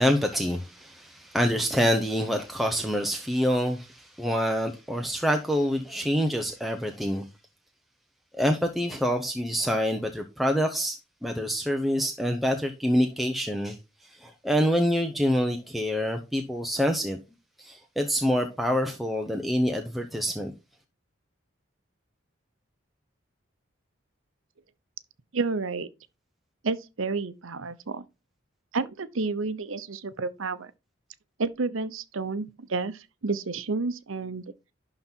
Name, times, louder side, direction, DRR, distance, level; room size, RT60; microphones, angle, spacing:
voice 1, 0.0-7.3 8.4-13.8 14.0-17.2 17.6-20.5, equal, ahead, 0.8 m, -26 dB
voice 2, 25.3-25.9 26.6-28.0 28.7-30.7 31.4-34.4, right 3 dB, 80° right, 0.8 m, -30 dB
11.5 x 3.9 x 4.4 m
head